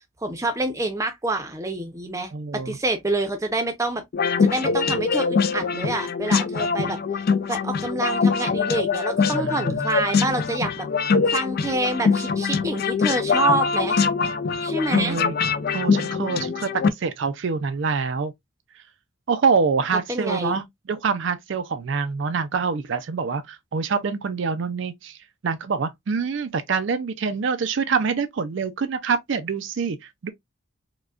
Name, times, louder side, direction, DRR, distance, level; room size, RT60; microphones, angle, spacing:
voice 1, 0.2-4.0 4.4-7.0 7.5-10.9 11.3-14.0 14.6-15.2 20.1-20.6, right 2 dB, 15° right, 0.6 m, -27 dB
voice 2, 2.3-2.8 9.3-9.9 14.9-15.3 15.7-18.3 19.3-25.2 25.4-30.3, right 5 dB, 55° right, 0.4 m, -25 dB
sound 1, 4.1-16.9, left 5 dB, 45° left, 0.3 m, -23 dB
4.8 x 2.2 x 2.3 m
head